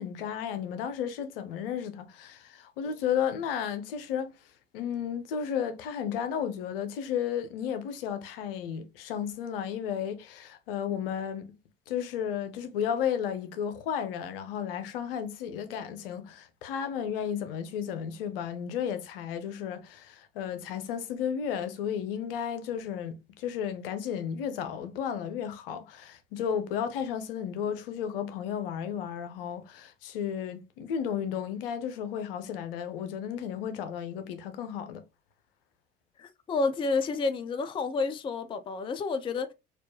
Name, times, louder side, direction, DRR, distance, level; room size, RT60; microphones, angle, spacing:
voice 1, 0.0-4.3 4.7-11.5 11.9-35.0, left 8 dB, 65° left, 0.7 m, -33 dB
voice 2, 36.2-39.5, left 4 dB, 15° left, 0.4 m, -30 dB
4.3 x 2.4 x 2.9 m
figure-of-eight pair, 55°, 30 cm